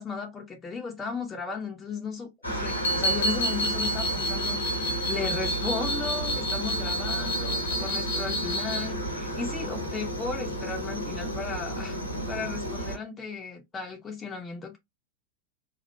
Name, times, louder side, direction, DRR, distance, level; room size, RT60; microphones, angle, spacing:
voice 1, 0.0-4.6 5.1-12.0 12.3-14.8, left 4 dB, 20° left, 0.7 m, -35 dB
Aircraft, 2.4-13.0, right 1 dB, 80° left, 1.4 m, -32 dB
sound 1, 2.7-8.9, equal, 65° left, 0.5 m, -30 dB
3.1 x 2.0 x 3.1 m
figure-of-eight pair, 90°, 0 cm